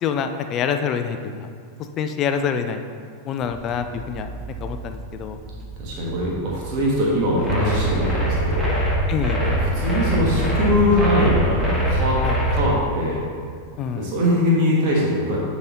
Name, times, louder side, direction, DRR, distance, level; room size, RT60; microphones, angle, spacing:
voice 1, 0.0-1.5 2.0-2.8 3.2-4.3 4.6-5.4 9.1-9.4 12.2-12.4 13.8-14.1, left 7 dB, 35° left, 7 dB, 0.5 m, -26 dB
sound 1, 3.4-12.8, right 3 dB, 25° right, 0.9 m, -38 dB
voice 2, 5.8-8.8 9.4-12.2 12.5-13.2 13.9-15.4, left 1 dB, 40° right, -4 dB, 1.5 m, -22 dB
sound 2, 7.4-12.6, right 1 dB, 5° right, 1.8 m, -22 dB
10.5 x 4.2 x 3.7 m, 2.2 s
figure-of-eight pair, 90°, 0 cm